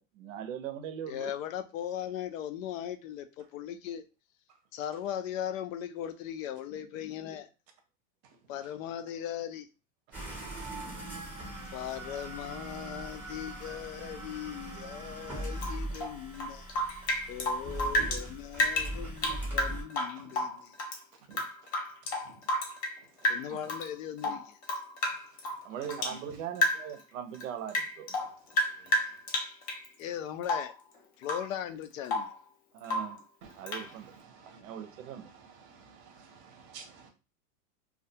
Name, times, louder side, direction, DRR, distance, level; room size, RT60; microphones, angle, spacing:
voice 1, 0.0-1.3 25.6-28.2 32.7-33.2 33.6-34.1 34.6-35.3, right 9 dB, 90° right, 0.6 m, -40 dB
voice 2, 1.1-4.0 4.7-7.5 8.5-9.7 11.7-16.7 17.3-20.7 23.3-24.6 30.0-30.7 31.2-32.3, left 10 dB, 80° left, 0.5 m, -38 dB
sound 1, 10.1-19.8, right 1 dB, 5° right, 0.6 m, -40 dB
Rain / Drip, 15.6-18.2 18.5-21.0 21.3-23.0 23.2-23.9 24.2-26.2 26.6-27.0 27.3-29.9 30.4-30.8 31.2-31.5 31.8-32.4 32.8-33.2 33.7-33.9, left 1 dB, 25° left, 0.3 m, -31 dB
voice 3, 34.3-34.7 35.6-37.1, right 6 dB, 40° right, 0.6 m, -52 dB
2.3 x 2.2 x 2.7 m
supercardioid pair, 155°, 38 cm